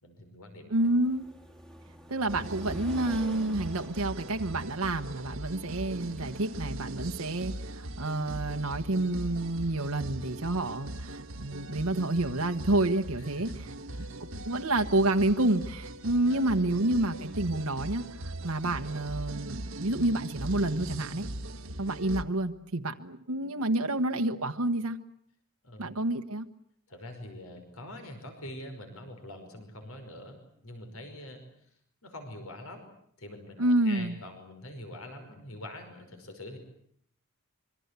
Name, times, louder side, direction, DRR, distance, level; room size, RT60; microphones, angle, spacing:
voice 1, 0.0-0.7 13.3-13.6 13.9-14.4 16.3-16.8 25.6-25.9 26.9-31.4 32.0-32.8 33.2-36.6, left 1 dB, 75° left, 6 dB, 5.3 m, -45 dB
sound 1, 0.7-15.9 16.2-16.3, equal, ahead, 1.9 m, -50 dB
voice 2, 0.7-1.2 2.1-13.5 14.4-21.3 21.8-25.0 25.8-26.5 33.6-34.1, right 2 dB, 85° right, 6 dB, 1.3 m, -29 dB
sound 2, 2.3-22.2, right 1 dB, 65° right, 1.3 m, -40 dB
26.0 x 23.5 x 8.3 m, 0.68 s
head